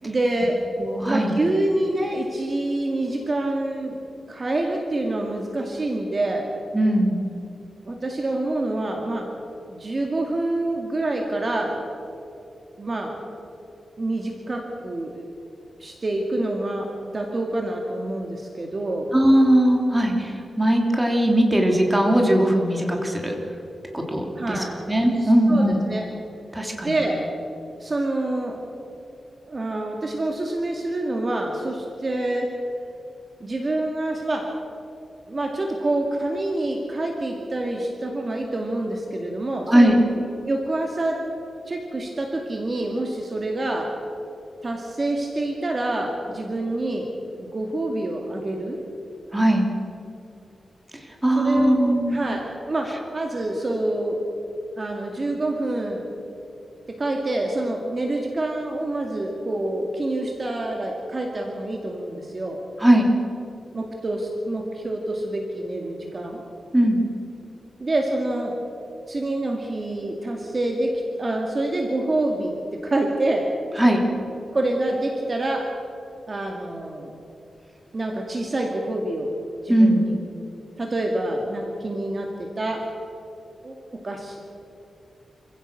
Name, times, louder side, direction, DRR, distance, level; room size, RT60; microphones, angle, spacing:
voice 1, 0.0-0.6 1.0-4.0 4.3-6.5 7.9-9.3 9.7-11.8 12.8-13.2 14.0-15.2 15.8-19.1 24.4-24.8 25.2-26.1 26.8-27.2 27.8-28.6 29.5-32.5 33.4-34.5 35.3-41.2 41.7-43.9 44.6-47.1 47.4-48.8 51.4-54.2 54.8-56.0 56.9-62.6 63.7-66.4 67.8-68.6 69.1-73.5 74.5-75.7 76.3-77.2 77.9-79.3 79.6-80.2 80.8-82.9 83.6-84.4, right 2 dB, 35° right, 1 dB, 2.1 m, -27 dB
voice 2, 0.8-1.3 6.7-7.1 19.1-23.4 23.9-25.8 26.5-26.9 39.7-40.0 49.3-49.7 51.2-52.2 62.8-63.1 66.7-67.0 73.8-74.0 79.7-80.0, right 1 dB, 10° right, 1 dB, 3.0 m, -19 dB
27.0 x 16.0 x 6.7 m, 2.7 s
wide cardioid pair, 130°, 0 cm